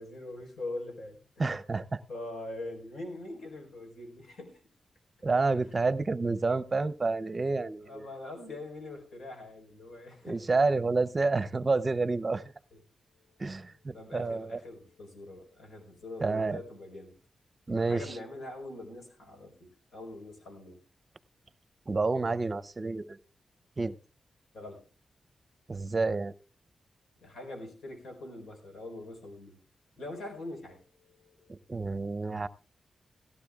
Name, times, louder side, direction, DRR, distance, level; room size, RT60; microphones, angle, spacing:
voice 1, 0.0-1.4 2.1-4.6 5.6-5.8 7.8-10.4 12.7-12.8 13.6-13.7 13.9-17.2 17.9-20.8 24.5-24.8 27.2-29.6 30.0-31.6, left 2 dB, 85° left, 3 dB, 4.2 m, -43 dB
voice 2, 1.4-2.0 5.2-8.1 10.2-12.4 13.4-14.6 16.2-16.6 17.7-18.1 21.9-23.2 23.8-24.0 25.7-26.3 31.5-32.5, right 3 dB, 35° right, 14 dB, 0.6 m, -29 dB
17.5 x 15.5 x 2.4 m, 0.34 s
cardioid pair, 85°, 0 cm